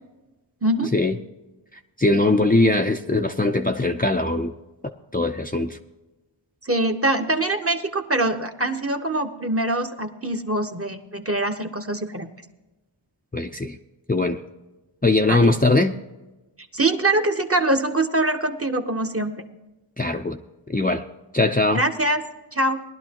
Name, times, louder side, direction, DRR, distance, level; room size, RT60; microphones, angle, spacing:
voice 1, 0.6-0.9 6.6-12.3 15.3-15.5 16.7-19.3 21.7-22.2 22.5-22.8, right 2 dB, 30° right, 5 dB, 1.1 m, -23 dB
voice 2, 2.0-4.5 5.1-5.8 13.3-13.8 14.1-14.4 15.0-15.9 20.0-20.4 20.7-21.0 21.3-21.8, left 2 dB, 20° left, 4 dB, 0.6 m, -20 dB
19.5 x 11.5 x 2.9 m, 1.1 s
wide cardioid pair, 60°, 48 cm